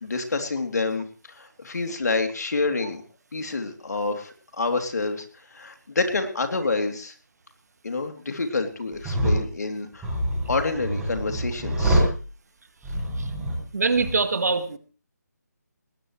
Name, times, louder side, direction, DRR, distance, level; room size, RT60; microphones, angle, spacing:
voice 1, 0.0-3.0 3.3-5.2 5.5-7.1 7.8-10.1 10.5-12.1, left 3 dB, 65° left, 6 dB, 3.1 m, -28 dB
sound 1, 8.9-9.4 10.0-12.2 12.8-13.6 13.9-14.1, right 1 dB, 10° right, 7.2 m, -25 dB
voice 2, 13.7-14.8, right 4 dB, 60° right, 10 dB, 1.9 m, -23 dB
19.0 x 18.5 x 3.2 m, 0.36 s
figure-of-eight pair, 160°, 10 cm